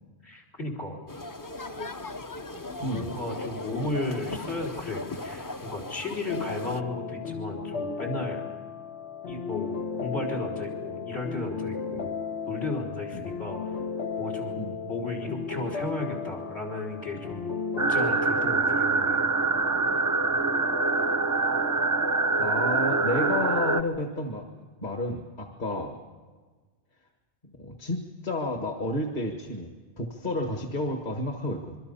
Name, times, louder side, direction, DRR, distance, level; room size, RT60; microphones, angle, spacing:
voice 1, 0.2-1.0 2.9-8.4 9.3-12.1 12.5-13.6 14.2-17.5 17.9-19.2 25.7-25.9, left 2 dB, 70° left, 2 dB, 4.6 m, -34 dB
sound 1, 1.1-6.8, left 2 dB, 20° left, 0.6 m, -38 dB
voice 2, 2.8-3.1 11.9-12.0 13.1-13.3 14.6-14.8 22.4-24.5 24.8-25.9 27.6-29.7 30.0-31.8, left 1 dB, 45° left, 3 dB, 1.8 m, -31 dB
sound 2, 6.3-17.9, left 5 dB, 90° left, 1.6 m, -35 dB
sound 3, 17.8-23.8, right 3 dB, 20° right, 0.6 m, -25 dB
26.5 x 23.0 x 5.7 m, 1.4 s
omnidirectional pair, 1.1 m